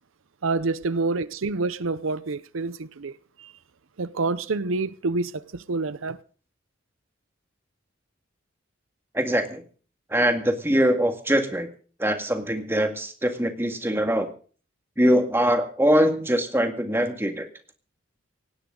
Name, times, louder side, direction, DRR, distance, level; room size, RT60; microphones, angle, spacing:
voice 1, 0.4-3.5 4.0-6.2, right 3 dB, 90° right, 0.7 m, -28 dB
voice 2, 9.1-9.6 10.1-11.7 12.0-14.3 15.0-17.5, equal, 10° right, 1.9 m, -22 dB
18.5 x 17.0 x 3.8 m
head